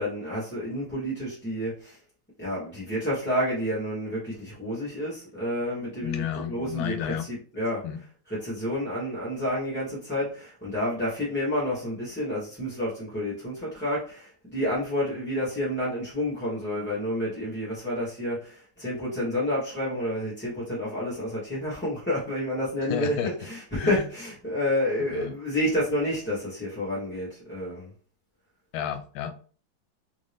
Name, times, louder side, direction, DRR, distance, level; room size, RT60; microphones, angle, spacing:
voice 1, 0.0-2.0 2.4-7.9 8.3-27.9, left 1 dB, 10° left, 0.7 m, -29 dB
voice 2, 6.0-7.3 7.8-8.0 22.9-23.3 23.8-24.0 25.1-25.3 28.7-29.4, left 9 dB, 80° left, 1.4 m, -31 dB
3.7 x 2.7 x 3.3 m
omnidirectional pair, 2.3 m